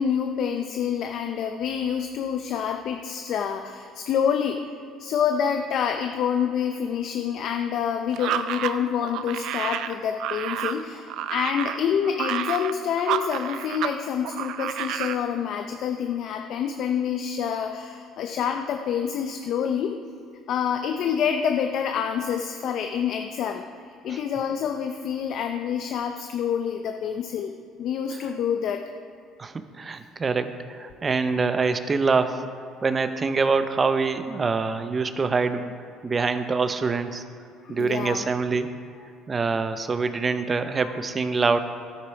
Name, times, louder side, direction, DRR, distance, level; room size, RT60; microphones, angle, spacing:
voice 1, 0.0-4.7 5.0-20.0 20.5-23.6 24.0-28.8 37.6-38.3 39.0-39.1 40.8-41.4, left 8 dB, 65° left, 5 dB, 0.6 m, -27 dB
sound 1, 8.1-14.0 14.2-15.2, right 10 dB, 70° right, 0.5 m, -30 dB
voice 2, 29.4-32.5 32.8-35.7 36.0-37.2 37.7-38.7 39.3-41.6, right 4 dB, 30° right, 10 dB, 0.7 m, -25 dB
12.0 x 8.4 x 4.8 m, 2.5 s
cardioid pair, 100°, 0 cm